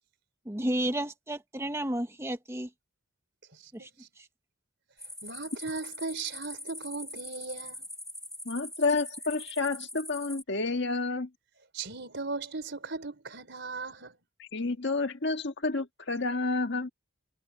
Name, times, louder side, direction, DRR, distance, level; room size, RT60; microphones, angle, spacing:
voice 1, 0.4-2.7 3.7-3.9, right 1 dB, 15° right, 1.2 m, -32 dB
voice 2, 3.6-4.1 5.2-7.8 11.7-14.2, right 3 dB, 55° right, 4.9 m, -37 dB
sound 1, 5.0-10.4, left 1 dB, 5° left, 3.2 m, -43 dB
voice 3, 8.4-11.3 14.4-16.9, left 3 dB, 55° left, 1.6 m, -30 dB
head